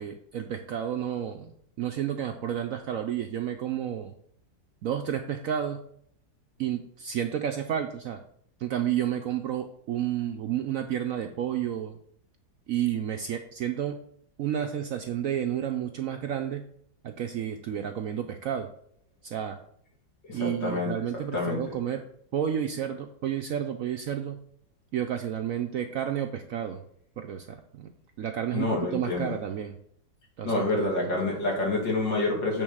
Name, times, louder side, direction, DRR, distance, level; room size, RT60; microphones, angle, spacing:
voice 1, 0.0-1.5 1.8-4.1 4.8-5.8 6.6-8.2 8.6-12.0 12.7-14.0 14.4-16.6 17.0-18.7 19.2-19.6 20.3-22.0 22.3-24.4 24.9-26.8 27.2-27.9 28.2-29.8 30.4-31.3, right 10 dB, 70° right, 6 dB, 0.8 m, -31 dB
voice 2, 20.3-20.9 21.3-21.6 28.5-29.3 30.4-32.6, left 2 dB, 80° left, -3 dB, 3.2 m, -27 dB
7.9 x 3.7 x 6.2 m, 0.64 s
omnidirectional pair, 2.0 m